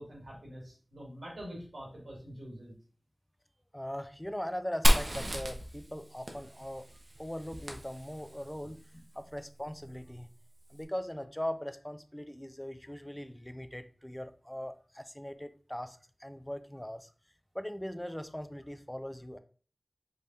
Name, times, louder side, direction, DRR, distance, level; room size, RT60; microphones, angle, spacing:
voice 1, 0.0-2.7, equal, 85° right, -4 dB, 2.3 m, -45 dB
voice 2, 3.7-6.9 7.2-8.8 9.2-10.3 10.7-17.1 17.5-19.4, equal, 10° left, 10 dB, 0.4 m, -40 dB
Fire, 4.8-8.5, equal, 55° right, 0.9 m, -31 dB
5.1 x 3.3 x 2.8 m, 0.41 s
wide cardioid pair, 60°, 0 cm